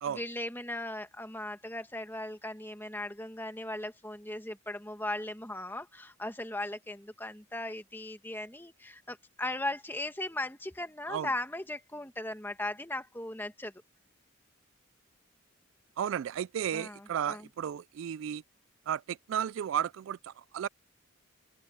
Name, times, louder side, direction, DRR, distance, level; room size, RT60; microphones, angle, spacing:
voice 1, 0.0-13.7 16.7-17.5, left 1 dB, 10° left, 1.7 m, -38 dB
voice 2, 16.0-18.4 18.9-20.7, right 9 dB, 75° right, 0.3 m, -33 dB
open air
head